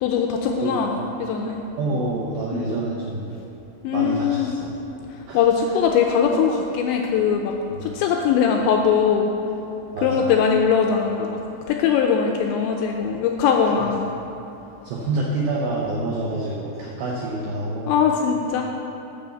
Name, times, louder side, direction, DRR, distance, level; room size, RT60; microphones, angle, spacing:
voice 1, 0.0-1.6 2.5-2.7 3.8-4.5 5.1-7.5 7.8-9.3 10.0-11.4 11.7-14.1 17.9-18.6, left 7 dB, 85° left, 2 dB, 2.6 m, -21 dB
voice 2, 1.8-3.4 3.9-4.8 5.3-5.4 7.7-8.0 9.9-10.3 14.8-17.9, right 2 dB, 80° right, -3 dB, 2.1 m, -27 dB
12.0 x 5.5 x 7.0 m, 2.9 s
omnidirectional pair, 5.7 m